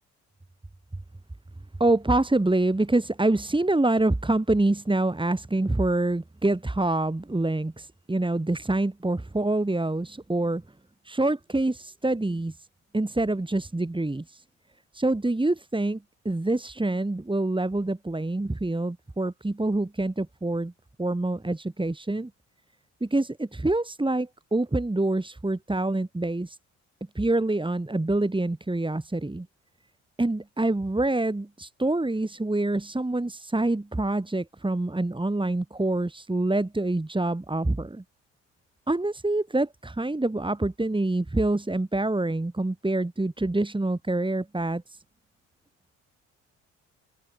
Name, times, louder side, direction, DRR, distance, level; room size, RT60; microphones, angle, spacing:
voice 1, 1.8-10.6 11.1-12.5 12.9-14.4 14.9-16.0 16.3-20.7 21.0-22.3 23.0-26.6 27.2-29.5 30.2-38.0 38.9-44.8, right 2 dB, 15° right, 7.2 m, -26 dB
hypercardioid pair, 55°, 37 cm